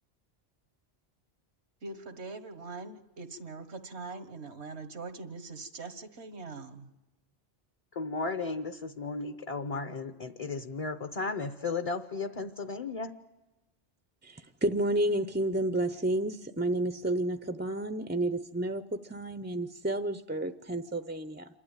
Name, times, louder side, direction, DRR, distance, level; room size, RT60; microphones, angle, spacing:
voice 1, 1.8-6.9, right 3 dB, 90° right, 8 dB, 1.7 m, -42 dB
voice 2, 7.9-13.1, left 4 dB, 35° left, 8 dB, 0.8 m, -35 dB
voice 3, 14.2-18.8 19.1-21.5, right 1 dB, 15° right, 10 dB, 0.4 m, -31 dB
27.5 x 12.0 x 9.0 m, 1.1 s
omnidirectional pair, 1.1 m